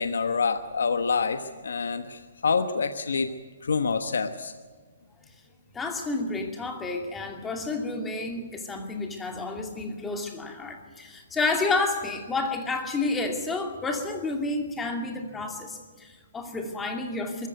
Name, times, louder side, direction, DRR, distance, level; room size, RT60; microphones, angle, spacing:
voice 1, 0.0-3.3 3.6-4.5, left 5 dB, 90° left, 9 dB, 1.2 m, -27 dB
voice 2, 5.7-17.5, left 3 dB, 10° left, 3 dB, 2.5 m, -30 dB
23.0 x 14.5 x 9.3 m, 1.5 s
hypercardioid pair, 155°, 0 cm